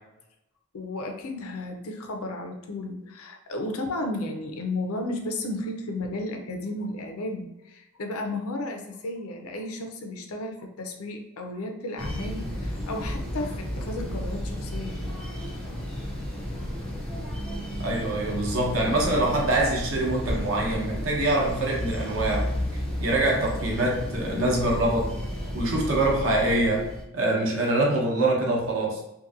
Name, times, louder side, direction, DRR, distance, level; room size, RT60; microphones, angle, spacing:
voice 1, 0.7-15.0, left 2 dB, 85° left, 4 dB, 0.5 m, -33 dB
sound 1, 12.0-27.0, equal, 5° left, 0.4 m, -32 dB
voice 2, 17.8-22.5 23.0-25.1 25.5-26.9 27.1-29.0, right 2 dB, 65° right, -2 dB, 0.8 m, -24 dB
2.8 x 2.5 x 2.5 m, 0.90 s
head